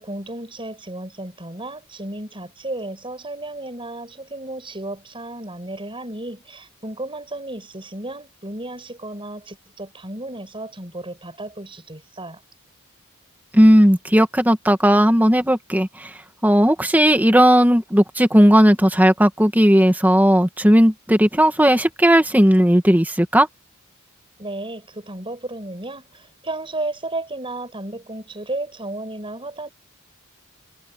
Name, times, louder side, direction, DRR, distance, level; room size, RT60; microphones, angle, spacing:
voice 1, 0.0-12.4 24.4-29.7, right 2 dB, 25° right, 6.7 m, -33 dB
voice 2, 13.5-16.1 16.4-23.5, equal, 10° right, 2.0 m, -15 dB
head